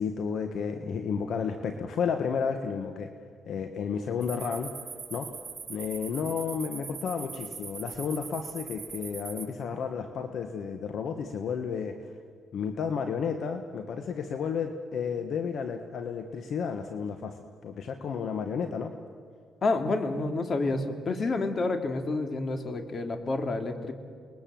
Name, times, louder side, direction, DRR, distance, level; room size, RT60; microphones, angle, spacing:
voice 1, 0.0-3.1 3.5-4.7 5.1-5.3 5.7-12.1 12.5-18.9, left 6 dB, 65° left, 7 dB, 1.4 m, -32 dB
sound 1, 4.2-9.5, right 5 dB, 30° right, 4.4 m, -41 dB
voice 2, 19.6-23.9, left 3 dB, 45° left, 7 dB, 2.6 m, -29 dB
29.5 x 21.0 x 7.7 m, 2.2 s
cardioid pair, 90°, 0 cm